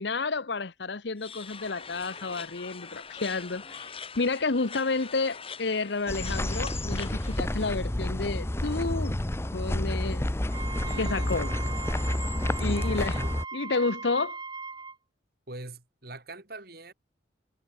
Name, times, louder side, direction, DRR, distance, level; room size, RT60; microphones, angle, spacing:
voice 1, 0.0-9.2 9.5-10.3 11.0-11.5 12.6-13.2 13.5-14.4, left 3 dB, 65° left, 0.9 m, -30 dB
sound 1, 1.2-7.4, left 6 dB, 30° left, 3.7 m, -43 dB
sound 2, 6.1-13.5, left 1 dB, 15° left, 0.6 m, -29 dB
Wind instrument woodwind instrument, 10.4-15.0, right 4 dB, 25° right, 4.0 m, -39 dB
voice 2, 10.9-12.0 12.6-13.3 15.5-16.9, right 2 dB, 55° right, 4.4 m, -43 dB
head